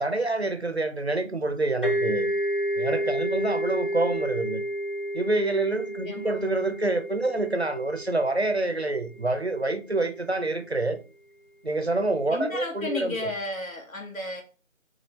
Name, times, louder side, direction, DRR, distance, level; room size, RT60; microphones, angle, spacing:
voice 1, 0.0-2.3 2.8-4.6 5.1-11.0 11.6-13.3, right 2 dB, 55° right, 0.5 m, -27 dB
sound 1, 1.8-9.4, equal, 40° left, 0.8 m, -30 dB
voice 2, 6.0-6.4 12.3-14.4, left 2 dB, 85° left, 1.5 m, -33 dB
3.7 x 3.4 x 3.1 m
figure-of-eight pair, 175°, 40 cm